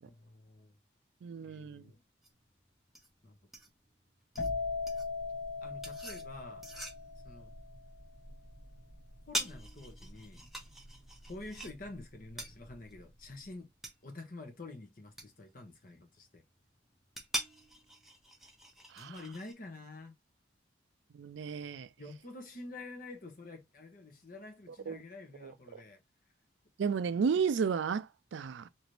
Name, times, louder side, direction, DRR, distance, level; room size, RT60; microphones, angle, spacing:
voice 1, 0.0-0.7 1.4-2.0 3.2-3.4 5.6-6.7 7.2-7.5 9.3-10.5 11.3-13.7 14.0-16.4 18.9-20.1 22.0-26.0 26.8-27.0, left 2 dB, 45° left, 0.9 m, -48 dB
voice 2, 1.2-1.8 18.9-19.1 21.1-21.9 24.9-25.0 25.4-25.8 26.8-28.7, right 6 dB, 75° right, 0.4 m, -33 dB
sound 1, 2.2-19.5, right 1 dB, ahead, 0.6 m, -45 dB
sound 2, 4.4-11.9 12.2-12.7, left 4 dB, 70° left, 1.5 m, -40 dB
2.9 x 2.6 x 3.1 m
head